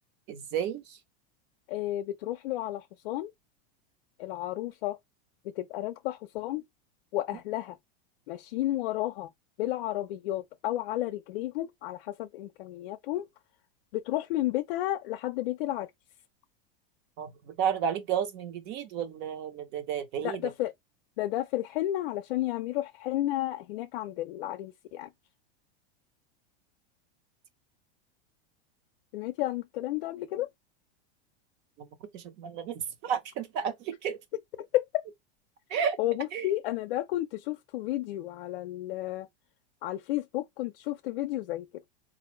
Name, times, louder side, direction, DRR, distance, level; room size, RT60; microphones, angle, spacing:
voice 1, 0.3-1.0 17.2-20.4 31.8-31.9 32.1-34.2 35.7-36.0 36.3-36.5, right 8 dB, 35° right, 0.9 m, -32 dB
voice 2, 1.7-3.3 4.2-5.0 5.4-6.6 7.1-7.8 8.3-9.3 9.6-13.3 13.9-15.9 20.2-20.7 21.2-25.1 29.1-30.5 34.7-35.0 36.0-39.3 39.8-41.7, left 15 dB, 65° left, 0.5 m, -32 dB
4.1 x 2.5 x 3.0 m
supercardioid pair, 165°, 32 cm